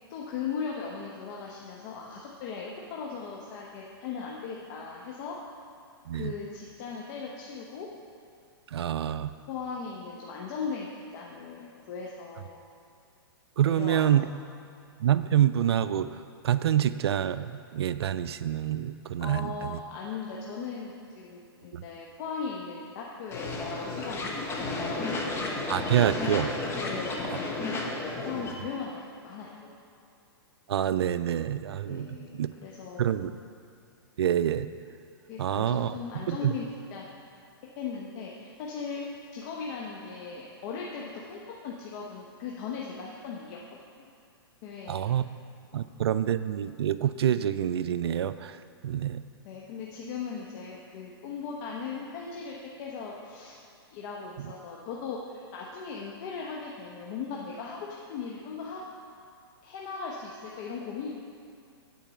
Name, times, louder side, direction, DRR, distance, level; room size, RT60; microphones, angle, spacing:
voice 1, 0.1-5.4 6.1-7.9 9.5-12.6 13.6-14.2 19.2-24.6 24.9-25.1 26.8-27.3 27.8-29.5 30.0-30.1 31.9-33.1 35.3-37.0 37.8-39.0 39.3-43.6 44.0-44.1 44.6-45.1 45.7-45.9 49.4-53.6 53.9-58.9 59.6-61.1, left 5 dB, 45° left, -3 dB, 1.0 m, -38 dB
voice 2, 8.7-9.3 13.6-14.3 15.0-16.1 16.4-19.8 21.7-21.8 25.7-26.5 30.7-32.5 33.0-33.3 34.2-34.7 35.4-36.0 36.3-36.5 44.9-45.3 45.7-48.6 48.8-49.2, right 10 dB, 80° right, 13 dB, 0.4 m, -27 dB
sound 1, 23.3-28.5, left 3 dB, 20° left, 1.1 m, -32 dB
9.2 x 4.5 x 7.1 m, 2.4 s
hypercardioid pair, 130°, 13 cm